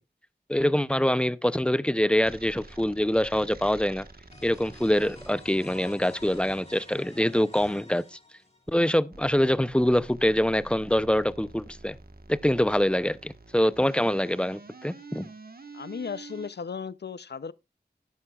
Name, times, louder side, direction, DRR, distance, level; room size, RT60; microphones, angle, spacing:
voice 1, 0.5-4.1 4.4-8.2 8.7-12.0 12.3-15.3, equal, 5° left, 0.5 m, -25 dB
sound 1, 2.2-7.8 9.1-16.5, right 3 dB, 60° right, 1.3 m, -48 dB
sound 2, 4.3-8.9, left 2 dB, 40° left, 2.4 m, -50 dB
voice 2, 15.7-17.5, left 6 dB, 75° left, 0.5 m, -36 dB
13.0 x 11.0 x 2.3 m
wide cardioid pair, 60°, 17 cm